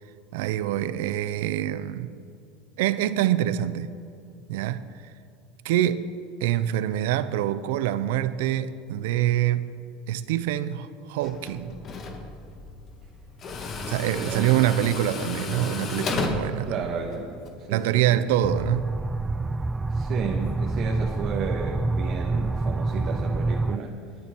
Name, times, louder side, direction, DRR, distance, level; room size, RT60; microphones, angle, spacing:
voice 1, 0.3-2.2 2.8-3.9 4.5-4.9 5.6-6.1 6.4-9.7 10.1-11.8 13.9-16.8 17.7-19.0, right 12 dB, 75° right, 0.7 m, -25 dB
Tools, 11.2-17.5, left 3 dB, 40° left, 2.0 m, -33 dB
voice 2, 13.7-14.5 16.5-18.2 19.9-24.0, right 5 dB, 50° right, 1.7 m, -33 dB
sound 1, 18.4-23.8, right 3 dB, 15° right, 0.4 m, -27 dB
24.5 x 10.5 x 4.6 m
supercardioid pair, 100°, 0 cm